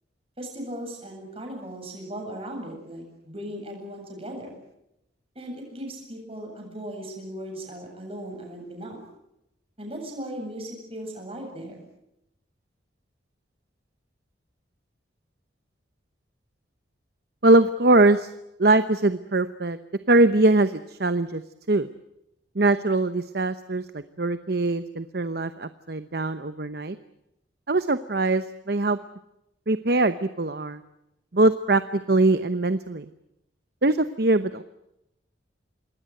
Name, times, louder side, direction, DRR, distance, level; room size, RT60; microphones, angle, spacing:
voice 1, 0.4-4.6 5.3-9.0 9.8-11.8, right 1 dB, 30° right, 1 dB, 7.9 m, -37 dB
voice 2, 17.4-18.3 18.6-19.8 20.1-21.4 21.7-21.9 22.5-27.0 27.7-29.0 29.7-30.8 31.3-33.0 33.8-34.6, right 2 dB, 55° right, 11 dB, 0.9 m, -22 dB
27.0 x 21.0 x 7.8 m, 0.85 s
head